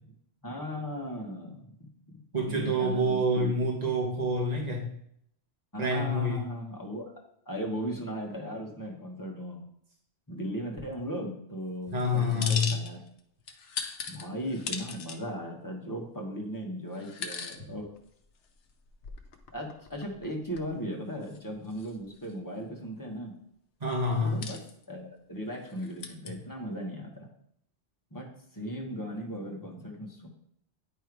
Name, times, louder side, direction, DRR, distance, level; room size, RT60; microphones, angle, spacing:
voice 1, 0.4-3.7 5.7-7.0 7.5-9.6 10.3-13.0 14.1-17.9 19.5-23.4 24.1-24.6 24.9-27.3 28.1-28.3 28.5-30.3, equal, 20° left, -1 dB, 1.4 m, -37 dB
voice 2, 2.3-4.9 5.8-6.4 11.9-12.7 23.8-24.4, left 1 dB, 35° right, -2 dB, 1.6 m, -27 dB
sound 1, 12.0-13.2 13.5-15.2 15.9-16.0 16.9-17.6 18.0-18.1 18.7-20.3 20.5-20.7 21.3-21.4 21.7-22.3 24.1-24.8 25.7-26.3, left 6 dB, 70° left, 1.0 m, -38 dB
9.5 x 3.5 x 4.7 m, 0.70 s
omnidirectional pair, 1.1 m